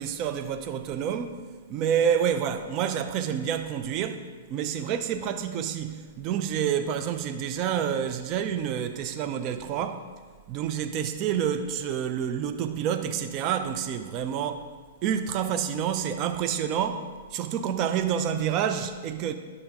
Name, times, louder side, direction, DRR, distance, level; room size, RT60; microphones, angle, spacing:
voice 1, 0.0-1.4 1.7-4.2 4.5-10.0 10.5-14.6 15.0-19.3, right 8 dB, 40° right, 8 dB, 0.5 m, -28 dB
10.0 x 6.4 x 3.6 m, 1.5 s
hypercardioid pair, 115°, 0 cm